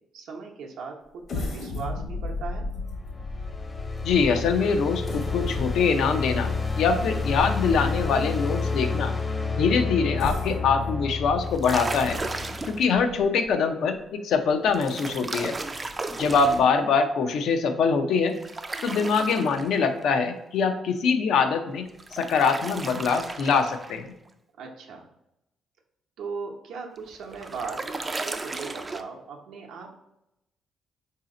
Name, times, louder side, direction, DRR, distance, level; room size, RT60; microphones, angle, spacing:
voice 1, 0.1-2.7 24.6-25.1 26.2-29.9, right 5 dB, 80° right, 0 dB, 0.7 m, -38 dB
sound 1, 1.2-8.4 9.0-9.1 10.0-13.5 14.0-14.1 14.5-14.7, left 3 dB, 60° left, 1.0 m, -36 dB
sound 2, 2.6-12.8, left 4 dB, 35° left, 0.6 m, -30 dB
voice 2, 4.0-9.1 9.5-12.2 12.7-14.0 14.2-15.5 16.2-18.4 18.8-21.8 22.1-24.1, left 5 dB, 75° left, 7 dB, 0.5 m, -23 dB
sound 3, 11.4-12.9 14.7-16.7 18.3-20.0 21.8-24.0 27.0-29.0, right 3 dB, 25° right, 0.3 m, -35 dB
4.1 x 2.8 x 3.7 m, 0.85 s
cardioid pair, 90°, 0 cm